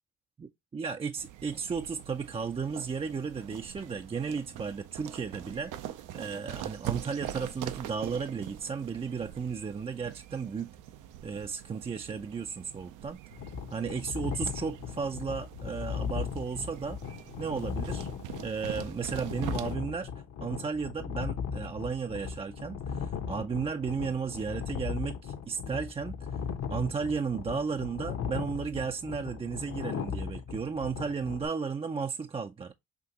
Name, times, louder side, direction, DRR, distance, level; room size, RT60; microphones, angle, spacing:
voice 1, 0.4-5.9 6.1-10.7 11.2-13.2 13.7-17.0 17.4-18.1 18.4-20.1 20.4-26.4 26.7-32.7, right 5 dB, 20° right, 0.4 m, -34 dB
sound 1, 1.2-19.8, right 11 dB, 85° right, 0.6 m, -44 dB
sound 2, 13.3-31.5, left 7 dB, 60° left, 1.0 m, -37 dB
5.8 x 2.9 x 2.8 m
cardioid pair, 90°, 30 cm